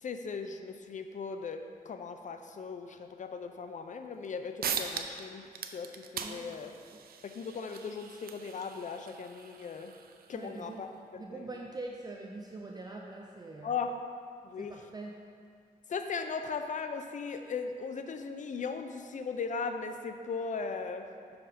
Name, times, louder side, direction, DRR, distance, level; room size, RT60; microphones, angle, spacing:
voice 1, 0.0-6.7 7.2-9.9 10.3-10.9 11.3-11.5 13.6-14.0 14.4-14.9 15.9-21.4, left 5 dB, 55° left, 7 dB, 0.5 m, -38 dB
sound 1, 4.2-4.3 4.6-5.3 5.5-10.7, right 7 dB, 80° right, 0.5 m, -40 dB
voice 2, 6.2-6.6 6.9-7.0 10.3-10.8 11.2-13.8 14.6-15.2, right 2 dB, 25° right, 0 dB, 0.5 m, -43 dB
6.1 x 4.8 x 5.0 m, 2.2 s
cardioid pair, 95°, 15 cm